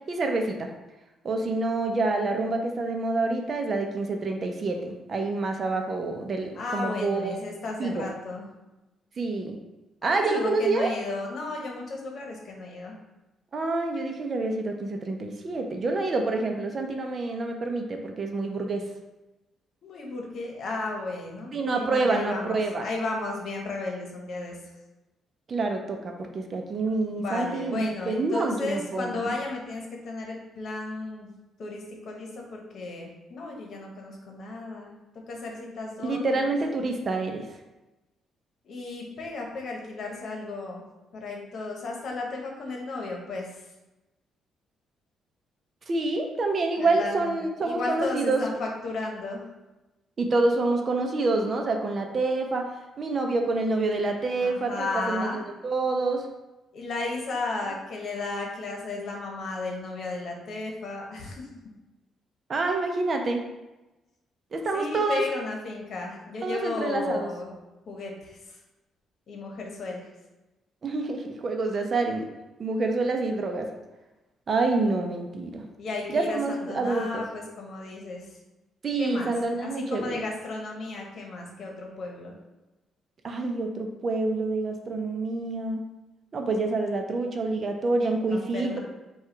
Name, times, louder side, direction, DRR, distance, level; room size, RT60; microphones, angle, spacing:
voice 1, 0.1-0.7 1.2-7.4 7.8-8.1 9.2-9.6 10.0-10.9 13.5-18.8 21.5-22.9 25.5-29.3 36.0-37.4 45.9-48.4 50.2-52.6 53.0-56.3 62.5-63.4 64.5-65.2 66.4-67.3 70.8-72.2 72.6-73.7 74.5-75.6 76.1-77.2 78.8-80.2 83.2-85.8 86.3-88.8, right 3 dB, 45° right, 3 dB, 0.6 m, -27 dB
voice 2, 6.5-8.4 10.0-12.9 19.8-24.6 27.1-31.3 31.6-34.9 35.3-36.5 38.6-40.8 41.1-43.5 46.8-49.4 54.4-55.4 56.7-61.5 64.7-67.5 67.9-68.4 69.3-70.1 75.8-78.2 79.0-79.3 79.6-82.3 88.3-88.8, left 3 dB, 60° left, 0 dB, 1.0 m, -34 dB
4.6 x 2.4 x 4.5 m, 1.1 s
cardioid pair, 90°, 0 cm